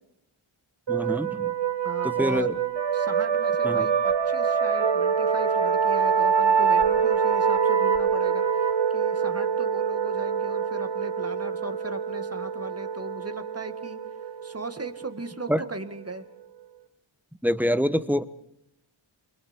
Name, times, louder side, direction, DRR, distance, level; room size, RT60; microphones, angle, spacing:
voice 1, 0.9-1.5 2.0-2.6 3.6-3.9 15.5-15.6 17.4-18.2, equal, 5° right, 13 dB, 1.0 m, -25 dB
sound 1, 0.9-16.2, right 6 dB, 55° right, 1.6 m, -25 dB
voice 2, 1.8-2.5 2.9-8.4 8.9-14.0 14.4-16.3, right 2 dB, 30° right, 9 dB, 1.9 m, -37 dB
28.5 x 24.0 x 4.5 m, 0.79 s
wide cardioid pair, 85°, 50 cm